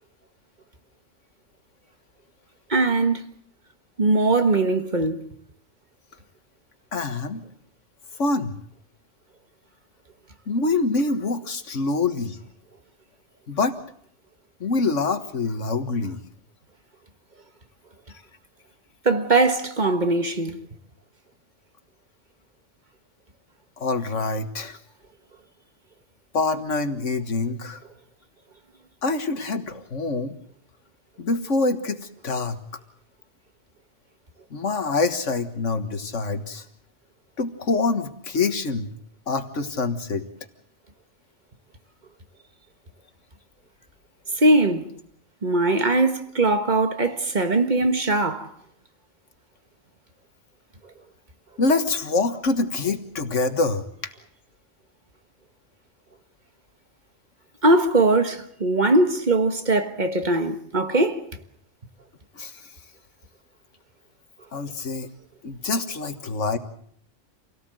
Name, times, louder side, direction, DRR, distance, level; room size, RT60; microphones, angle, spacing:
voice 1, 2.7-3.2 4.0-5.3 19.0-20.6 44.4-44.9 45.4-48.5 57.6-61.2, right 2 dB, 40° right, 1.6 m, -21 dB
voice 2, 6.9-7.4 8.2-8.6 10.5-12.4 13.5-13.8 14.6-16.2 23.8-24.8 26.3-27.8 29.0-30.4 31.2-32.6 34.5-36.7 37.4-38.9 39.3-40.2 51.6-54.1 62.3-62.5 64.5-65.1 65.4-66.6, left 3 dB, 80° left, 1.9 m, -25 dB
27.5 x 17.5 x 7.8 m
omnidirectional pair, 1.3 m